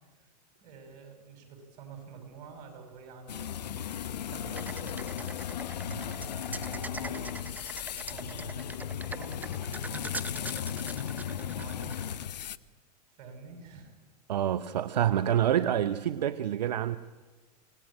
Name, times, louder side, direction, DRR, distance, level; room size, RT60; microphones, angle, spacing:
voice 1, 0.6-5.3 6.0-7.8 8.1-11.9 13.1-13.9, right 5 dB, 60° right, 7.0 m, -48 dB
sound 1, 3.3-12.6, left 10 dB, 90° left, 0.8 m, -36 dB
sound 2, 4.6-12.3, right 3 dB, 10° right, 0.7 m, -42 dB
voice 2, 14.3-17.0, right 10 dB, 85° right, 0.8 m, -27 dB
26.0 x 18.0 x 8.9 m
hypercardioid pair, 105°, 21 cm